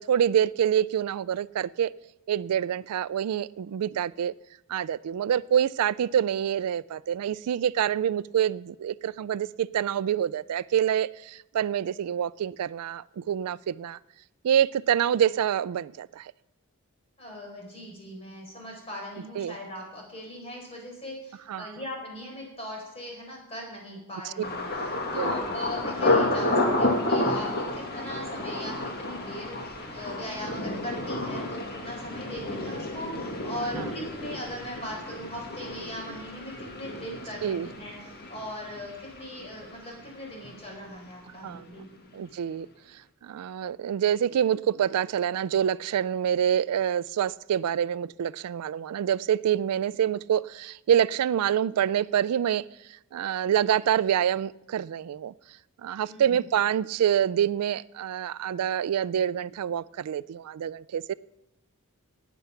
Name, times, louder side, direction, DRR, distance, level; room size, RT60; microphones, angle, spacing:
voice 1, 0.0-1.9 2.3-4.3 4.7-14.0 14.4-16.3 19.4-19.5 21.5-21.7 25.0-25.3 33.8-33.9 37.4-37.7 41.4-41.7 42.1-42.7 43.2-52.6 53.1-55.3 55.8-61.1, right 9 dB, 90° right, 0.3 m, -26 dB
voice 2, 17.2-41.9 56.0-56.5, equal, 30° left, 4.4 m, -40 dB
Thunder, 24.4-40.2 40.4-41.1 41.5-41.7, left 2 dB, 45° left, 1.8 m, -30 dB
18.5 x 7.0 x 5.7 m
head